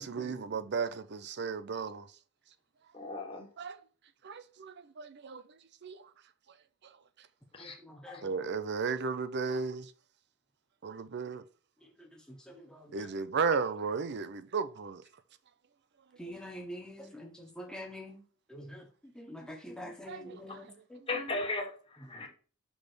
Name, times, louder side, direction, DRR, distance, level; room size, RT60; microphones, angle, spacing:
voice 1, 0.0-2.1 3.6-3.8 4.2-5.4 5.8-6.1 8.2-9.9 10.8-11.4 12.9-15.0 16.3-16.4 20.1-20.6, right 5 dB, 50° right, 0.6 m, -34 dB
voice 2, 2.9-3.5 7.5-7.8 8.1-8.2 21.1-22.3, left 3 dB, 25° left, 1.6 m, -36 dB
voice 3, 7.6-8.3 12.3-13.1 16.2-18.2 18.5-18.9 19.1-21.0 22.2-22.3, equal, 5° left, 1.2 m, -46 dB
6.2 x 3.6 x 5.0 m
head